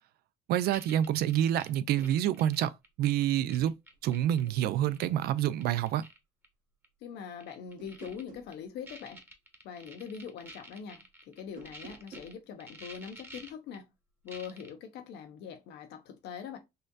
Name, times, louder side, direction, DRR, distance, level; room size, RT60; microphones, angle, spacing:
voice 1, 0.5-3.7 4.0-6.1, right 11 dB, 70° right, 0.4 m, -28 dB
sound 1, 0.7-4.5 4.8-5.1 5.4-6.2 6.4-6.5 6.8-6.9 7.4-8.2 8.5-8.6 8.8-12.3 12.6-13.8 14.3-14.7, right 1 dB, 15° right, 0.9 m, -49 dB
sound 2, 1.8-2.2 3.7-4.1 4.5-5.3 7.8-8.5 11.4-12.4, right 6 dB, 55° right, 1.1 m, -51 dB
voice 2, 7.0-9.2 9.6-13.9 14.2-16.6, left 7 dB, 80° left, 0.9 m, -43 dB
4.2 x 2.6 x 2.2 m
cardioid pair, 110°, 17 cm